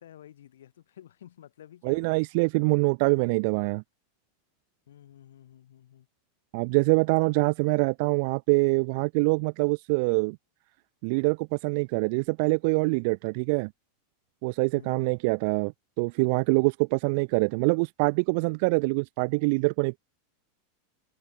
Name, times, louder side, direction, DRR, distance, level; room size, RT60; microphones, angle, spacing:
voice 1, 0.0-2.3 4.9-6.1 14.7-15.1, left 11 dB, 85° left, 7.5 m, -51 dB
voice 2, 1.8-3.8 6.5-10.4 11.0-13.7 14.4-20.0, right 31 dB, 60° right, 0.5 m, -25 dB
hypercardioid pair, 120°, 0 cm